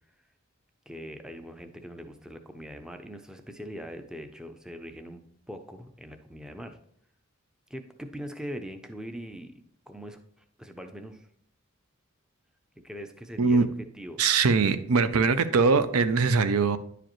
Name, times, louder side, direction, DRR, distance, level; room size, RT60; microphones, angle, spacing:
voice 1, 0.9-5.2 5.5-6.8 7.7-10.2 10.6-11.3 12.8-13.7 14.0-14.2, equal, 5° right, 7 dB, 0.4 m, -41 dB
voice 2, 13.4-13.7 14.2-16.8, right 4 dB, 90° right, 12 dB, 0.5 m, -22 dB
9.9 x 5.0 x 3.0 m, 0.67 s
head